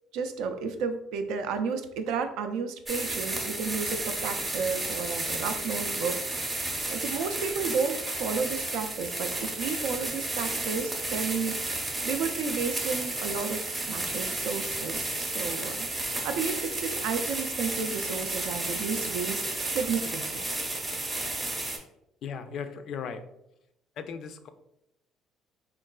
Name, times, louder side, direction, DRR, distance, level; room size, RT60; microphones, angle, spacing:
voice 1, 0.1-11.6 12.0-20.4, right 5 dB, 85° right, 7 dB, 0.3 m, -32 dB
sound 1, 2.9-21.8, right 2 dB, 20° right, 0.7 m, -32 dB
voice 2, 22.2-23.2 24.0-24.5, left 6 dB, 60° left, 9 dB, 0.3 m, -37 dB
3.7 x 2.3 x 2.2 m, 0.81 s
cardioid pair, 110°, 0 cm